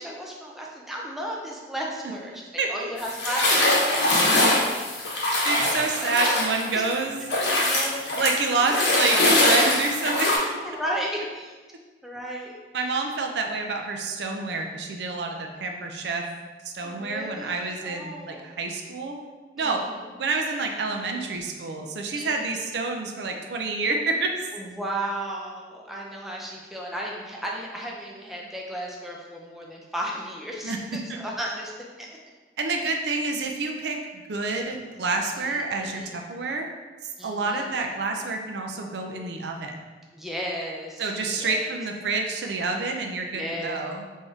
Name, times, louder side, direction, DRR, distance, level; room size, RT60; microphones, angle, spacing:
voice 1, 0.0-6.9 7.5-9.1 10.6-11.5 12.0-12.5 16.8-18.6 19.6-20.1 22.1-22.7 24.5-31.7 32.0-32.1 35.4-36.1 37.2-37.7 40.1-41.1 41.4-41.8 43.3-43.8, right 1 dB, ahead, -2 dB, 0.4 m, -35 dB
voice 2, 2.6-2.9 5.4-7.2 8.2-10.4 12.7-16.2 16.6-19.2 19.6-19.8 20.2-24.3 30.6-30.8 31.1-31.2 32.6-36.7 37.2-39.8 41.0-44.0, right 3 dB, 70° right, 2 dB, 0.4 m, -28 dB
sound 1, 3.0-6.9 7.3-10.4, left 1 dB, 80° left, 0.8 m, -22 dB
3.5 x 2.6 x 3.5 m, 1.3 s
head